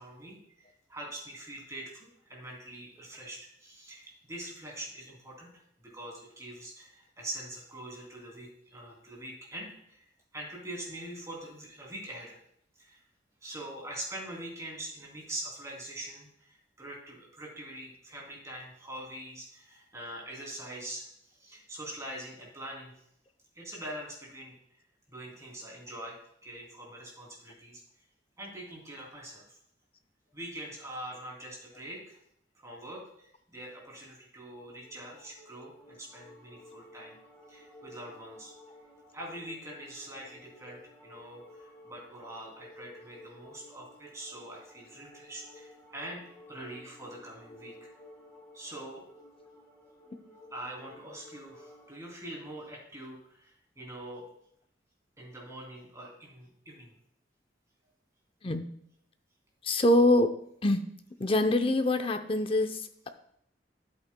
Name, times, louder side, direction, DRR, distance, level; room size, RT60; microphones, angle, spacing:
voice 1, 0.0-12.4 12.7-13.0 13.4-22.9 23.5-24.8 25.1-27.8 28.4-29.6 30.3-32.2 32.5-37.2 37.5-38.5 39.1-47.7 48.5-49.0 50.5-54.2 55.2-56.9, right 1 dB, 20° right, -2 dB, 2.9 m, -44 dB
sound 1, 34.4-52.0, left 1 dB, 10° left, 1.5 m, -54 dB
voice 2, 59.6-60.3 60.6-60.8 61.2-63.1, left 1 dB, 30° left, 8 dB, 0.6 m, -25 dB
12.0 x 8.2 x 2.2 m, 0.70 s
head